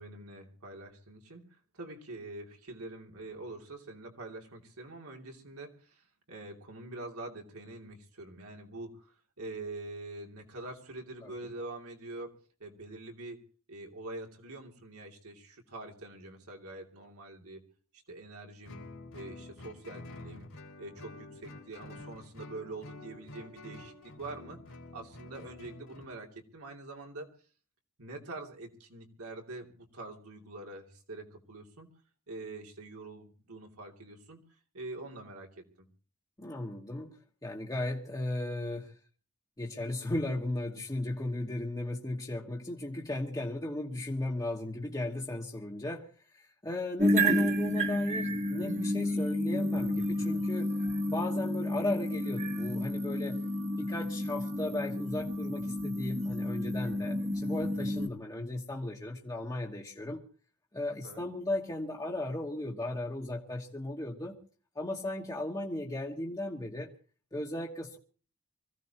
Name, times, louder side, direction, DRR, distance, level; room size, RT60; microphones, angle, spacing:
voice 1, 0.0-1.4 1.7-12.3 12.6-13.4 13.7-17.6 17.9-18.8 19.1-20.5 20.8-27.3 28.0-31.9 32.3-34.4 34.7-35.9 50.0-50.4 61.0-61.2, right 2 dB, 80° right, 1 dB, 2.9 m, -45 dB
Guitar, 18.7-26.1, left 2 dB, 75° left, 3.2 m, -48 dB
voice 2, 36.4-39.0 39.6-50.8 51.1-53.4 53.8-60.2 60.7-64.3 64.7-66.9 67.3-68.0, left 1 dB, 15° left, -2 dB, 1.3 m, -36 dB
sound 1, 47.0-58.1, equal, 30° right, 1.4 m, -31 dB
25.0 x 16.0 x 3.0 m, 0.40 s
head